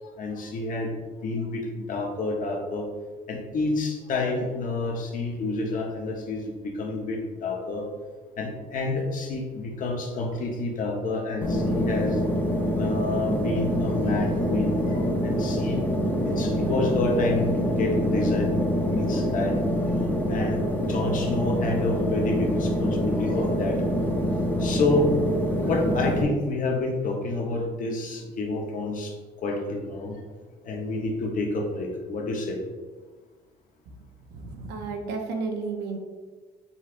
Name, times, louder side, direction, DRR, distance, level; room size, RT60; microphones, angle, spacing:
voice 1, 0.2-2.9 3.3-7.9 8.4-12.2 12.7-15.8 16.2-19.6 20.3-23.8 24.6-25.1 25.6-30.2 30.6-32.6, left 2 dB, 50° left, 0 dB, 1.0 m, -29 dB
sound 1, 11.4-26.2, equal, 10° left, 0.6 m, -25 dB
voice 2, 34.3-36.0, right 4 dB, 80° right, 3 dB, 0.7 m, -32 dB
5.5 x 3.2 x 2.5 m, 1.4 s
cardioid pair, 110°, 17 cm